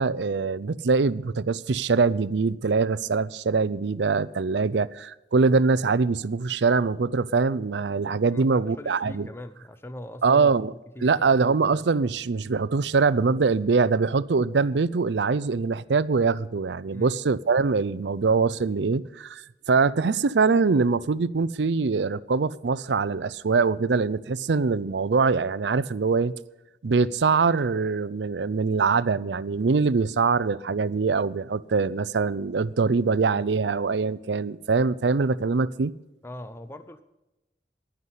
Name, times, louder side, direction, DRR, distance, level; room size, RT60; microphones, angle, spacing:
voice 1, 0.0-9.3 10.2-10.7 11.0-19.4 19.7-26.3 26.8-35.9, right 4 dB, 80° right, 0.5 m, -23 dB
voice 2, 8.3-11.4 16.9-17.2 36.2-37.0, left 1 dB, 15° left, 0.6 m, -41 dB
11.0 x 9.6 x 8.2 m
head